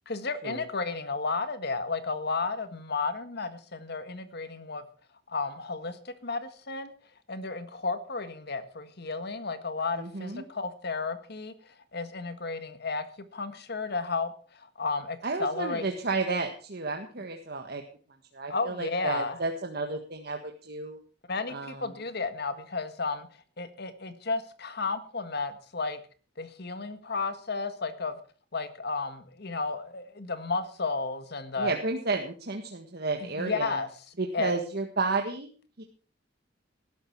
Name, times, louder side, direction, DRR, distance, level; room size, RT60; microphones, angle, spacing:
voice 1, 0.0-4.8 5.3-6.9 7.3-13.0 13.3-16.0 18.5-19.4 21.3-23.3 23.6-26.0 26.4-28.2 28.5-31.7 33.2-34.5, left 4 dB, 60° left, 10 dB, 1.7 m, -33 dB
voice 2, 9.9-10.5 15.2-17.8 18.3-21.0 21.5-22.0 31.6-33.8 34.2-35.5 35.8-35.9, right 3 dB, 60° right, 4 dB, 1.6 m, -32 dB
18.0 x 11.5 x 4.7 m, 0.40 s
head